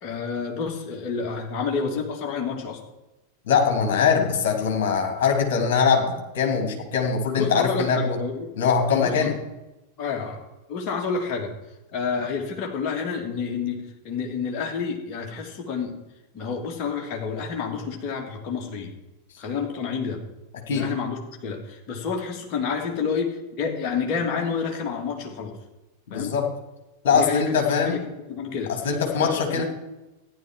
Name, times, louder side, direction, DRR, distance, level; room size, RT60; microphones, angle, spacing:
voice 1, 0.0-2.8 7.4-8.5 9.0-9.3 10.0-11.5 11.9-16.0 16.3-18.9 19.4-20.2 20.7-25.6 26.1-26.4 27.1-28.0 28.3-28.7 29.1-29.6, left 5 dB, 35° left, 1 dB, 2.9 m, -29 dB
voice 2, 3.5-8.2 8.6-9.3 20.7-20.9 26.1-26.5 27.0-28.0 28.8-29.6, left 6 dB, 55° left, 4 dB, 2.9 m, -22 dB
14.5 x 10.5 x 4.7 m, 0.98 s
figure-of-eight pair, 90°, 0 cm